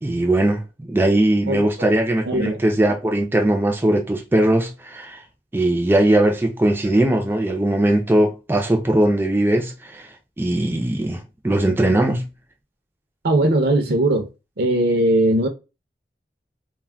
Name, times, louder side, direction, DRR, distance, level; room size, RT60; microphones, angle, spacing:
voice 1, 0.0-5.2 5.5-10.1 10.4-11.2 11.4-12.3, right 1 dB, 10° right, 0.4 m, -19 dB
voice 2, 1.5-1.9 2.3-2.6 13.2-14.3 14.6-15.5, right 1 dB, 60° right, 0.6 m, -19 dB
2.2 x 2.1 x 3.3 m
head